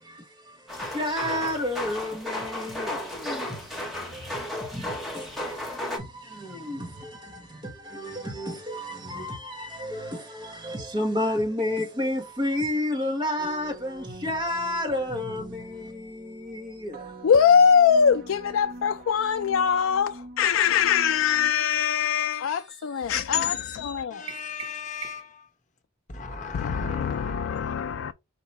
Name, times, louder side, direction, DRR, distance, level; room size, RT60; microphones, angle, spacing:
voice 1, 0.0-17.1, left 1 dB, 25° right, 1.2 m, -31 dB
sound 1, 0.7-6.0, left 1 dB, ahead, 1.2 m, -34 dB
late bells, 13.4-21.5, right 2 dB, 45° right, 0.5 m, -44 dB
voice 2, 17.2-24.3 26.5-28.1, left 7 dB, 75° left, 0.3 m, -22 dB
voice 3, 24.1-25.5 26.1-28.1, left 5 dB, 35° left, 0.8 m, -38 dB
sound 2, 24.3-25.5, right 6 dB, 85° right, 0.9 m, -42 dB
4.6 x 2.8 x 4.0 m
head